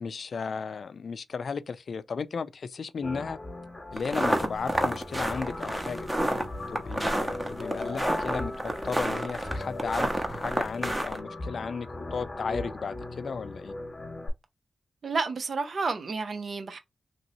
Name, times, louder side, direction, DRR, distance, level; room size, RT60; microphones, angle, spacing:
voice 1, 0.0-3.4 3.9-6.0 6.7-13.7, left 5 dB, 65° left, 0.3 m, -35 dB
sound 1, 3.0-14.3, left 2 dB, 30° left, 1.0 m, -38 dB
sound 2, 4.0-11.2, right 1 dB, 15° right, 0.8 m, -29 dB
voice 2, 15.0-16.8, right 4 dB, 65° right, 0.6 m, -30 dB
3.0 x 2.8 x 2.7 m
cardioid pair, 60°, 0 cm